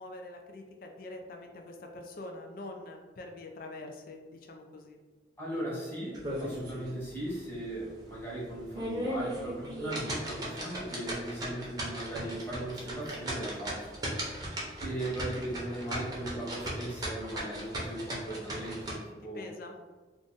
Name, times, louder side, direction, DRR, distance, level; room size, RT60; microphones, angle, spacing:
voice 1, 0.0-5.0 19.3-19.7, left 2 dB, 50° left, 3 dB, 0.3 m, -45 dB
voice 2, 5.4-13.9 14.8-19.5, right 1 dB, 10° left, -7 dB, 1.0 m, -38 dB
sound 1, 6.1-6.9 7.3-7.4 7.9-8.0 8.6-19.0, right 1 dB, 20° right, 0.7 m, -37 dB
2.5 x 2.4 x 3.8 m, 1.3 s
head